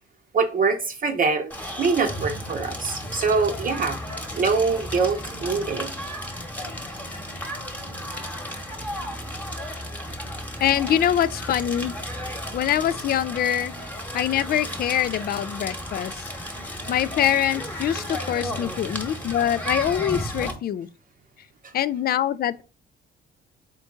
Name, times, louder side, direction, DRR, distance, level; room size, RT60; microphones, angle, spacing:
voice 1, 0.3-1.5 1.8-4.0 4.3-5.9 21.6-21.7, right 4 dB, 45° right, 0.7 m, -24 dB
Crackle, 1.5-20.5, equal, 10° left, 1.1 m, -34 dB
voice 2, 10.6-11.9 12.5-13.7 14.1-16.3 16.9-20.9 21.7-22.6, left 10 dB, 50° left, 0.4 m, -24 dB
3.8 x 3.7 x 3.7 m
cardioid pair, 90°, 20 cm